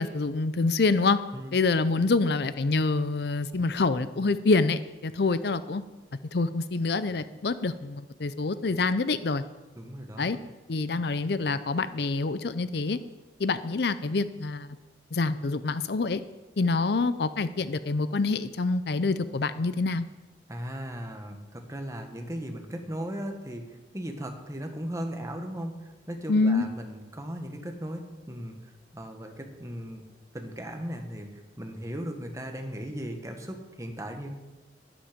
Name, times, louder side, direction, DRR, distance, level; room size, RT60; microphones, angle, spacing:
voice 1, 0.0-1.2 1.5-5.8 6.3-9.4 10.2-10.4 10.7-13.0 13.4-14.7 15.1-16.2 16.6-20.0 26.3-26.6, left 3 dB, 60° left, 13 dB, 0.6 m, -26 dB
voice 2, 9.7-10.3 20.5-30.0 30.3-34.3, equal, 15° right, 4 dB, 1.4 m, -37 dB
12.5 x 12.0 x 5.2 m, 1.2 s
head